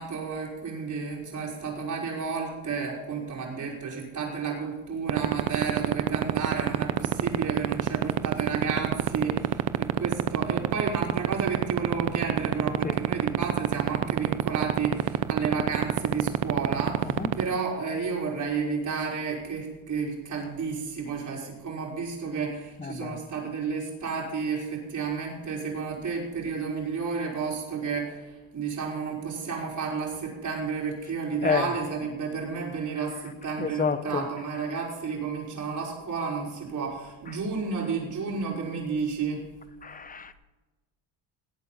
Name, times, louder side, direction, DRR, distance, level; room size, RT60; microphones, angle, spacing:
voice 1, 0.0-39.4, right 5 dB, 40° right, -2 dB, 5.5 m, -31 dB
sound 1, 5.1-17.4, right 16 dB, 75° right, 0.8 m, -22 dB
voice 2, 22.8-23.2 31.4-31.7 33.6-34.3 39.8-40.3, left 6 dB, 20° left, 13 dB, 0.9 m, -29 dB
19.5 x 8.6 x 4.3 m, 1.2 s
cardioid pair, 100°, 44 cm